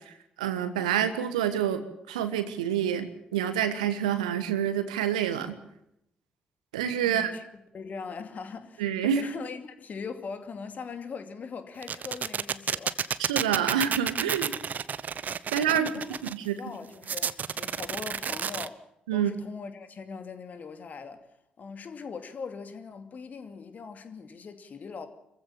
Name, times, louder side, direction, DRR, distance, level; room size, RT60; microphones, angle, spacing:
voice 1, 0.1-1.8 2.1-5.6 6.7-7.3 8.8-9.2 13.3-14.5 15.5-15.9 16.3-16.6 19.1-19.3, right 9 dB, 75° right, 1.5 m, -27 dB
voice 2, 7.0-7.5 7.7-13.0 15.7-16.2 16.5-18.9 19.1-25.1, left 5 dB, 45° left, 2.5 m, -41 dB
sound 1, 11.8-16.3 17.0-18.7, right 7 dB, 45° right, 0.9 m, -30 dB
26.5 x 15.0 x 7.5 m
figure-of-eight pair, 40°, 4 cm